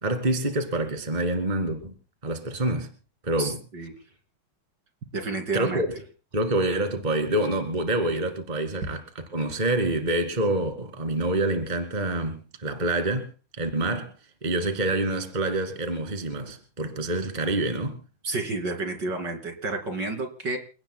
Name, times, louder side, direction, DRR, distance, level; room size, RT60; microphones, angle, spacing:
voice 1, 0.0-1.9 2.2-2.9 3.2-3.6 5.5-5.9 6.3-13.3 13.6-14.1 14.4-18.0, right 2 dB, 20° right, 6 dB, 2.3 m, -27 dB
voice 2, 3.4-3.9 5.1-5.8 18.2-20.6, right 3 dB, 55° right, 5 dB, 3.2 m, -30 dB
29.0 x 17.5 x 2.2 m, 0.36 s
omnidirectional pair, 2.3 m